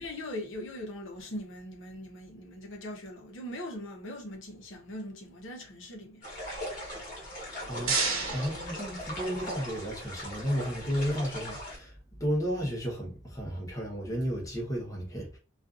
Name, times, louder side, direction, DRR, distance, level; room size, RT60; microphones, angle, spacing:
voice 1, 0.0-6.2, left 1 dB, 65° left, 0.7 m, -40 dB
sound 1, 6.2-11.8, equal, 40° left, 1.1 m, -40 dB
sound 2, 7.3-9.5, right 4 dB, 75° right, 0.8 m, -33 dB
voice 2, 8.3-15.4, equal, 15° left, 0.9 m, -33 dB
2.5 x 2.4 x 2.4 m
head